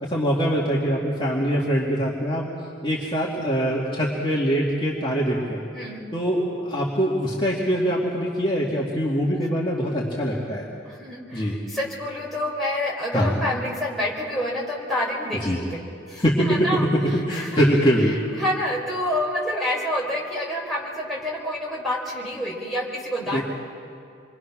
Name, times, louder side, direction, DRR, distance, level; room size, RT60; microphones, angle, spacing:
voice 1, 0.0-2.5 2.8-5.7 6.1-10.7 11.3-11.6 13.1-13.4 15.4-15.6 16.2-18.2 23.3-23.4, equal, 25° left, -5 dB, 2.3 m, -23 dB
voice 2, 5.7-6.1 10.8-15.8 16.1-17.7 18.3-23.4, left 1 dB, ahead, -5 dB, 4.5 m, -28 dB
28.0 x 23.0 x 6.2 m, 2.5 s
head